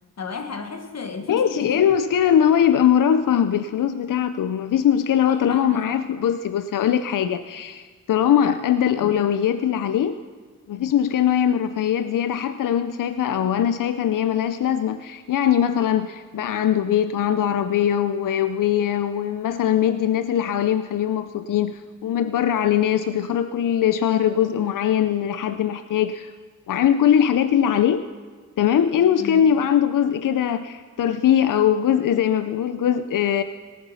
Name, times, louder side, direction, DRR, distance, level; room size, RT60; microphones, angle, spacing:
voice 1, 0.2-1.9 5.2-5.8 29.2-29.5, left 5 dB, 55° left, 6 dB, 1.3 m, -34 dB
voice 2, 1.3-10.2 10.7-26.3 26.7-28.1 28.6-33.4, left 9 dB, 80° left, 11 dB, 0.5 m, -21 dB
18.5 x 8.6 x 5.6 m, 1.5 s
wide cardioid pair, 100°, 32 cm